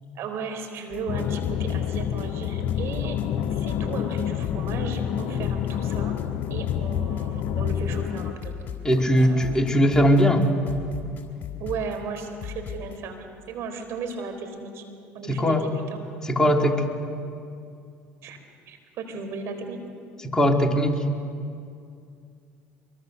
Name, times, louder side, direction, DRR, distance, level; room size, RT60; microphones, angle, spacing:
voice 1, 0.1-3.2 3.5-6.2 6.5-8.5 9.2-9.5 11.6-14.8 15.1-16.0 18.2-18.4 18.7-19.8, right 4 dB, 60° right, 5 dB, 4.2 m, -35 dB
sound 1, 0.9-13.0, left 9 dB, 40° left, 4.0 m, -39 dB
sound 2, 1.1-8.3, left 9 dB, 60° left, 0.8 m, -28 dB
voice 2, 8.8-10.5 15.3-15.7 16.2-16.8 20.2-21.0, equal, 15° left, 1 dB, 3.2 m, -20 dB
24.5 x 22.5 x 6.7 m, 2.4 s
hypercardioid pair, 75°, 5 cm